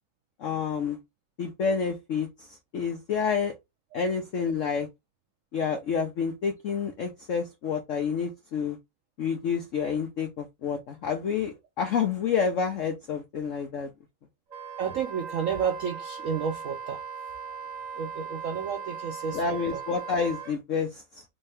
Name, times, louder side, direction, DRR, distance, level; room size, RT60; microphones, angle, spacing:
voice 1, 0.4-1.0 1.4-3.5 3.9-4.9 5.5-8.8 9.2-13.9 19.3-21.2, left 6 dB, 85° left, 0.6 m, -29 dB
Wind instrument woodwind instrument, 14.5-20.5, right 6 dB, 45° right, 1.5 m, -39 dB
voice 2, 14.8-17.0 18.0-19.8, right 7 dB, 80° right, 0.7 m, -31 dB
3.5 x 2.7 x 3.3 m
omnidirectional pair, 2.1 m